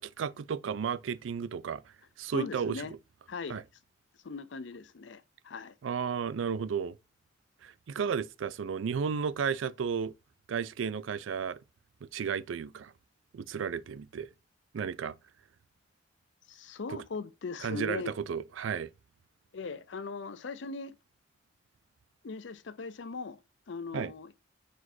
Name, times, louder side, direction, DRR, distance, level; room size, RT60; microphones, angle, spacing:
voice 1, 0.0-1.8 2.2-2.8 3.5-3.6 5.8-7.0 7.6-10.1 10.5-11.6 12.0-12.9 13.3-14.3 14.7-15.2 16.9-17.0 17.6-18.9 23.9-24.1, right 6 dB, 85° right, 0.4 m, -33 dB
voice 2, 2.3-2.9 3.3-3.6 4.2-5.7 16.5-18.1 19.5-21.0 22.2-23.4 23.7-24.3, left 4 dB, 70° left, 0.5 m, -39 dB
4.5 x 4.2 x 2.7 m
head